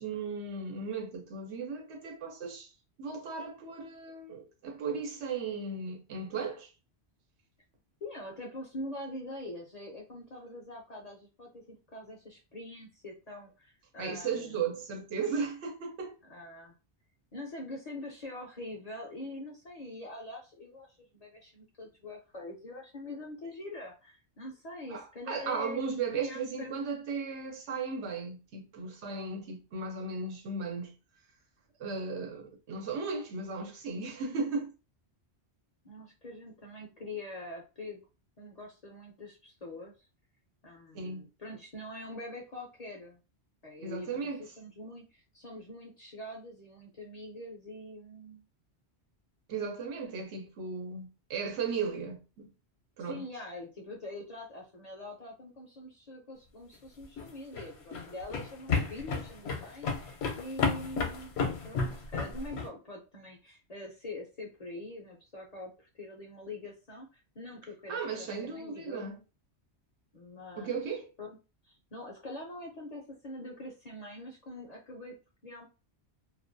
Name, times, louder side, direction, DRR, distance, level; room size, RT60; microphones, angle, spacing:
voice 1, 0.0-2.7 3.0-6.7 14.0-16.2 24.9-30.9 31.8-34.7 40.9-41.2 43.8-44.4 49.5-52.5 53.0-53.2 67.9-69.2 70.6-71.1, right 5 dB, 85° right, 1.0 m, -36 dB
voice 2, 8.0-14.6 16.2-16.7 17.3-26.7 35.8-38.0 38.4-39.9 40.6-43.2 43.6-48.4 53.0-61.4 61.6-69.1 70.1-70.8 71.2-71.4 71.6-75.2 75.4-75.7, left 1 dB, 50° left, 0.5 m, -44 dB
sound 1, 57.0-62.7, left 5 dB, 75° left, 0.8 m, -32 dB
2.4 x 2.2 x 2.5 m
omnidirectional pair, 1.1 m